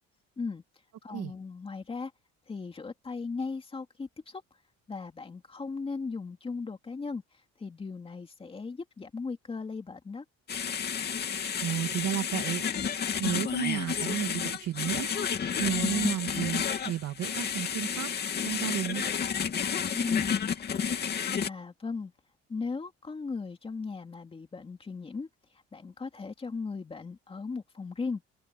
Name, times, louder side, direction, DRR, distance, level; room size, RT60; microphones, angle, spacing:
voice 1, 1.0-2.1 2.5-4.4 4.9-10.2 19.9-20.5 21.0-22.1 22.5-25.3 25.7-28.2, left 4 dB, 20° left, 2.6 m, -37 dB
sound 1, 10.5-21.5, left 7 dB, 35° left, 2.6 m, -31 dB
voice 2, 11.6-12.7 12.9-18.1 18.4-19.0, right 12 dB, 60° right, 2.3 m, -33 dB
cardioid pair, 155°, 29 cm